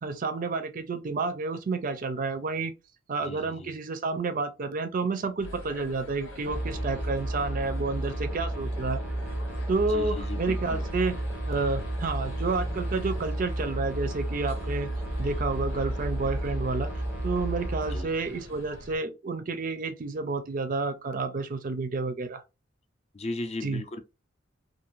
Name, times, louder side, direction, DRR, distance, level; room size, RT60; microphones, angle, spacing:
voice 1, 0.0-2.7 3.1-9.0 9.7-11.2 11.5-14.9 15.2-22.4 23.6-23.8, right 3 dB, 45° right, 0.4 m, -30 dB
voice 2, 3.2-3.7 9.9-10.9 17.9-18.1 23.1-24.0, left 2 dB, 35° left, 0.5 m, -37 dB
sound 1, 5.4-19.0, equal, 80° left, 1.1 m, -42 dB
sound 2, 6.5-18.0, right 1 dB, 10° right, 0.7 m, -32 dB
2.5 x 2.5 x 3.0 m
head